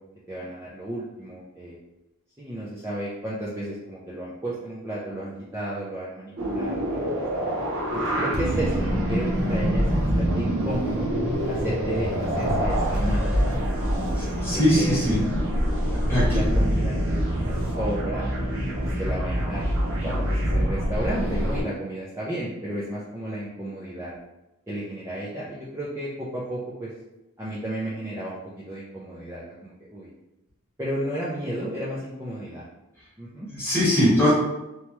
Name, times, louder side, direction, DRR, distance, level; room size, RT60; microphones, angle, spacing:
voice 1, 0.3-1.8 2.4-7.1 7.9-9.9 10.2-11.1 11.5-13.4 13.7-13.9 14.5-14.9 15.2-15.4 16.1-17.3 17.8-24.1 24.7-26.9 27.4-30.1 30.8-32.6 33.2-33.5, right 1 dB, 10° right, -8 dB, 0.4 m, -33 dB
sound 1, 6.4-21.6, equal, 65° right, 0.7 m, -25 dB
voice 2, 14.1-15.2 16.1-16.4 33.5-34.3, left 1 dB, 10° left, -8 dB, 1.1 m, -21 dB
2.9 x 2.2 x 3.1 m, 0.95 s
head